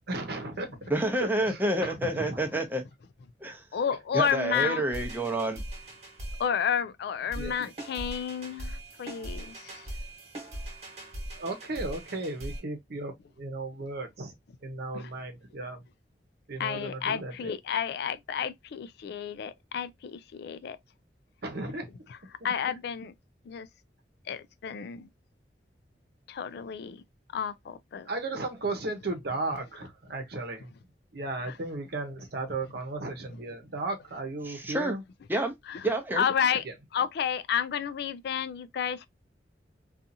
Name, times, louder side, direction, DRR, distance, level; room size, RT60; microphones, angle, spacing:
voice 1, 0.1-0.8 1.2-2.4 7.4-7.5 11.3-14.3 14.6-15.8 16.5-17.3 21.4-21.9 28.1-30.7 31.1-35.0 36.6-36.7, right 2 dB, 65° right, 0.8 m, -35 dB
voice 2, 0.9-2.8 3.4-3.6 4.1-5.6 34.4-34.9 35.3-35.5 35.8-36.2, right 1 dB, 10° right, 0.6 m, -28 dB
voice 3, 3.7-4.8 6.4-9.9 14.9-15.1 16.6-20.8 22.1-22.2 22.4-23.1 23.5-23.7 24.3-25.1 26.3-27.0 27.3-28.1 31.5-31.6 33.3-33.4 35.7-35.9 36.1-36.6 36.9-39.1, left 7 dB, 65° left, 0.3 m, -31 dB
sound 1, 4.9-6.5 7.3-12.6, right 1 dB, 40° right, 1.1 m, -40 dB
2.7 x 2.4 x 2.5 m
head